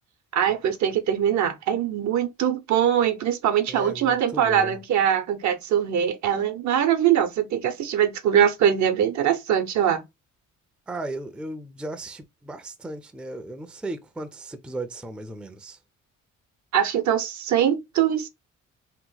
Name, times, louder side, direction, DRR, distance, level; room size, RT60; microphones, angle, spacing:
voice 1, 0.3-10.0 16.7-18.3, right 9 dB, 70° right, 0.7 m, -22 dB
voice 2, 3.7-4.8 10.9-15.8, right 2 dB, 5° right, 0.4 m, -36 dB
2.9 x 2.1 x 3.8 m
cardioid pair, 90°, 30 cm